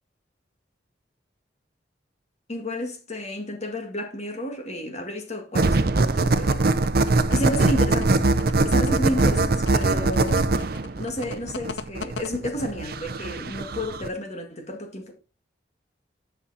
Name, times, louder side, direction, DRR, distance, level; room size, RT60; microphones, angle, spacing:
voice 1, 2.5-6.7 7.3-8.2 8.6-10.5 11.0-15.1, left 1 dB, 40° left, 1.9 m, -31 dB
sound 1, 5.5-14.1, right 3 dB, 55° right, 0.7 m, -22 dB
sound 2, 6.4-12.3, left 5 dB, 75° left, 0.7 m, -37 dB
10.0 x 5.7 x 4.1 m
head